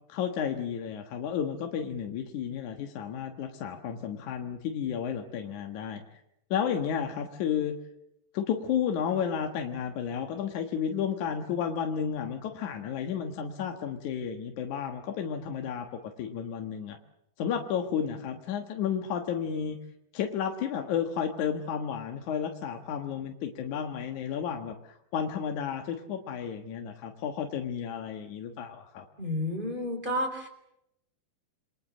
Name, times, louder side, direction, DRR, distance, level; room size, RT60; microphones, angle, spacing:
voice 1, 0.1-6.0 6.5-7.8 8.3-15.9 16.2-17.0 17.4-19.8 20.1-29.1, left 8 dB, 60° left, 4 dB, 2.2 m, -32 dB
voice 2, 29.2-30.5, left 1 dB, 10° right, 6 dB, 3.8 m, -31 dB
27.5 x 22.0 x 7.4 m, 0.81 s
omnidirectional pair, 5.1 m